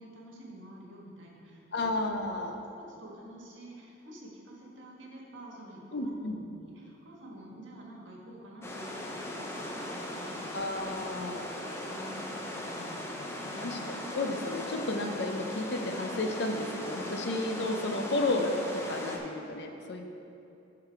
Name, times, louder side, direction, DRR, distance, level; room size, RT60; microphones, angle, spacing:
voice 1, 0.0-1.8 3.0-10.6 11.6-13.7, right 1 dB, 75° right, -2 dB, 1.5 m, -49 dB
voice 2, 1.7-2.6 5.9-6.3 10.5-11.5 13.6-20.1, left 2 dB, 60° left, 4 dB, 0.7 m, -32 dB
sound 1, 8.6-19.2, left 1 dB, 15° left, 0.7 m, -39 dB
11.5 x 3.9 x 4.5 m, 2.9 s
head